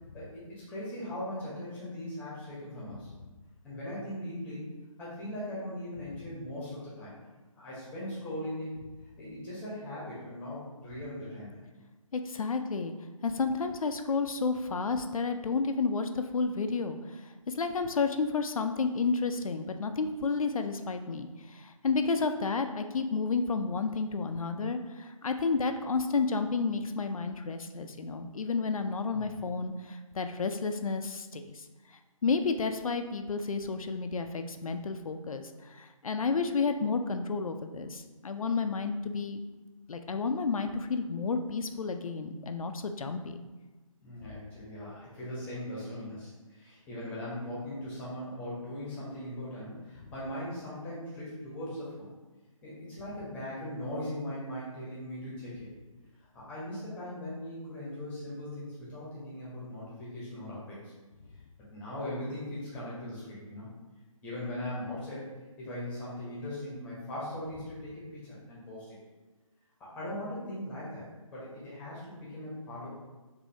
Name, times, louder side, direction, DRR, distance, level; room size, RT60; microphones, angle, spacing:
voice 1, 0.1-3.1 3.6-4.7 5.0-7.2 7.5-8.7 9.2-11.6 29.1-29.4 44.0-52.1 52.6-55.7 56.3-60.9 61.7-63.7 64.2-65.3 65.6-69.0 69.8-72.9, left 1 dB, 10° left, -8 dB, 0.9 m, -39 dB
voice 2, 12.1-12.9 13.2-31.6 32.2-39.4 39.9-43.4, left 4 dB, 75° left, 7 dB, 0.4 m, -31 dB
6.4 x 2.7 x 2.6 m, 1.2 s
figure-of-eight pair, 155°, 18 cm